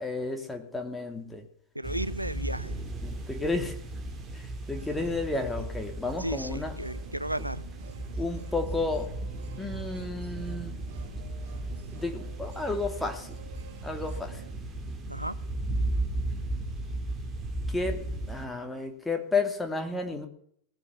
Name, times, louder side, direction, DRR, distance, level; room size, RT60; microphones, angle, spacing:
voice 1, 0.0-1.4 3.0-3.7 4.3-6.8 7.4-7.5 8.2-9.1 9.6-10.7 11.9-13.4 13.8-14.4 17.7-18.0 18.3-20.3, left 3 dB, 5° left, 4 dB, 2.6 m, -32 dB
voice 2, 1.7-2.7 6.2-7.6 15.1-15.4, right 1 dB, 85° right, 18 dB, 0.5 m, -34 dB
sound 1, 1.8-18.5, right 2 dB, 15° right, 3.4 m, -35 dB
sound 2, 4.7-14.5, right 7 dB, 50° right, 3.2 m, -51 dB
19.0 x 9.7 x 7.0 m, 0.65 s
figure-of-eight pair, 90°, 0 cm